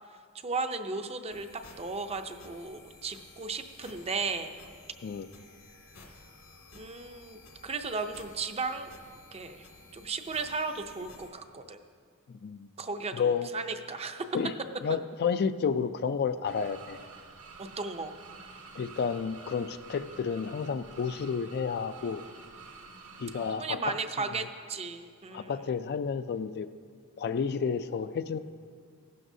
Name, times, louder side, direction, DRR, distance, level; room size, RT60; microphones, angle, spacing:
voice 1, 0.4-4.5 6.7-8.9 9.3-9.7 9.9-11.8 12.8-14.2 17.6-18.1 23.6-25.6, right 4 dB, 30° right, 7 dB, 0.5 m, -35 dB
sound 1, 1.3-11.3, left 2 dB, 75° left, 2.1 m, -54 dB
voice 2, 12.3-12.7 13.1-13.5 14.3-14.5 14.8-17.0 18.7-22.2 23.2-23.9 25.3-26.7 27.2-28.4, left 6 dB, 45° left, 11 dB, 0.3 m, -31 dB
sound 2, 16.4-23.6, right 4 dB, 75° right, 1.3 m, -49 dB
16.0 x 12.0 x 2.7 m, 2.1 s
head